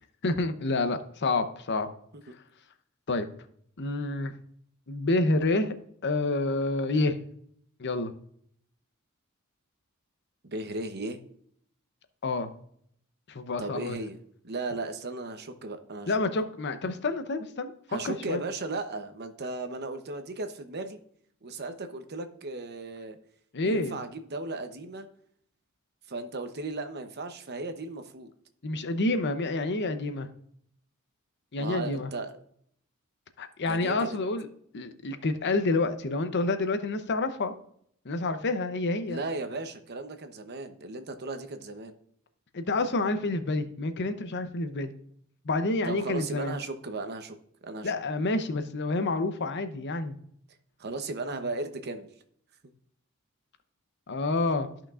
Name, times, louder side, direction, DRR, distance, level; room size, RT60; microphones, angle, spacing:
voice 1, 0.2-1.9 3.1-3.3 3.8-4.3 4.9-5.7 6.0-7.2 7.8-8.1 12.2-12.5 13.3-14.0 16.1-18.4 23.5-24.0 28.6-30.3 31.5-32.1 33.4-34.5 34.7-37.5 38.0-39.2 42.5-44.9 45.4-46.6 47.8-50.2 54.1-54.7, left 2 dB, 55° left, 9 dB, 0.7 m, -28 dB
voice 2, 10.4-11.2 13.6-14.2 14.4-16.1 17.9-21.0 21.4-23.2 23.6-25.1 26.1-28.3 31.6-32.3 33.7-34.2 39.1-41.9 45.8-47.4 47.6-47.9 50.8-52.1, right 2 dB, 50° right, 8 dB, 0.8 m, -36 dB
13.5 x 5.9 x 2.4 m, 0.66 s
head